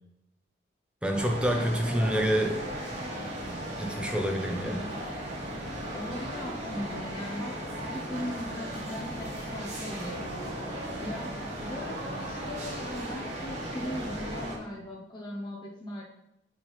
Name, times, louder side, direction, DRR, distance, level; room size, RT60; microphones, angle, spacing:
voice 1, 1.0-2.5 3.8-4.8, equal, 5° right, 1 dB, 0.9 m, -27 dB
sound 1, 1.1-14.6, right 1 dB, 40° right, 1.6 m, -36 dB
voice 2, 1.5-2.1 4.7-5.0 5.9-10.3 11.0-16.0, left 1 dB, 25° left, -4 dB, 0.9 m, -39 dB
7.3 x 3.6 x 5.8 m, 0.81 s
head